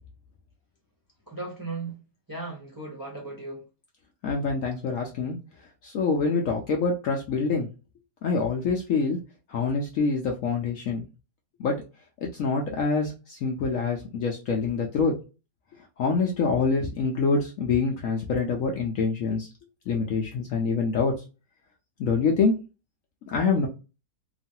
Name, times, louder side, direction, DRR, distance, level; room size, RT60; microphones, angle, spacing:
voice 1, 1.3-2.0 2.3-3.6, right 3 dB, 20° right, -1 dB, 0.5 m, -36 dB
voice 2, 4.2-5.4 5.8-7.7 8.2-9.2 9.5-11.0 11.6-11.8 12.2-15.1 16.0-19.5 19.9-21.1 22.0-22.6 23.3-23.7, left 4 dB, 70° left, 1 dB, 0.8 m, -25 dB
3.0 x 2.4 x 2.7 m, 0.30 s
omnidirectional pair, 1.8 m